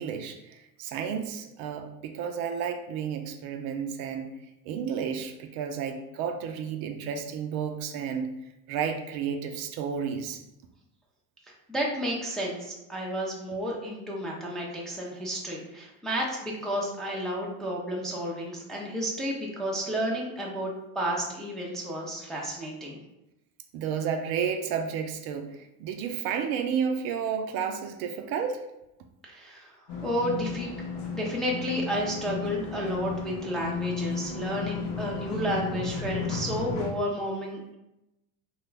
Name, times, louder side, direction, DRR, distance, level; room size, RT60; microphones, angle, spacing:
voice 1, 0.0-4.3 4.6-8.4 8.7-10.4 23.7-28.6, right 7 dB, 60° right, 5 dB, 0.5 m, -32 dB
voice 2, 11.7-23.0 29.2-29.7 30.0-30.7 31.1-37.8, equal, ahead, -3 dB, 0.4 m, -31 dB
sound 1, 29.9-36.9, left 5 dB, 65° left, 0.7 m, -34 dB
2.9 x 2.3 x 3.2 m, 0.90 s
supercardioid pair, 105°, 42 cm